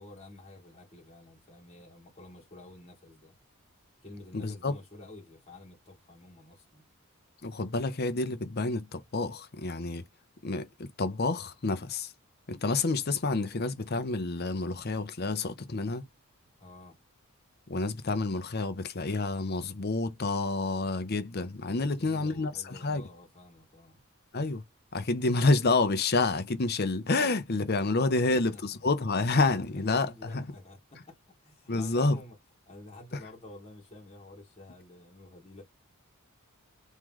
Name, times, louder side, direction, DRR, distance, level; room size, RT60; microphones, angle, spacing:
voice 1, 0.0-3.3 4.0-6.8 16.6-17.0 21.8-24.0 28.3-28.6 29.7-32.4 32.7-35.6, left 2 dB, 30° left, 1.8 m, -50 dB
voice 2, 4.3-4.8 7.4-10.0 10.4-12.1 12.5-16.0 17.7-23.1 24.3-24.6 24.9-30.4 31.7-32.2, left 3 dB, 45° left, 0.7 m, -29 dB
3.2 x 3.1 x 3.7 m
head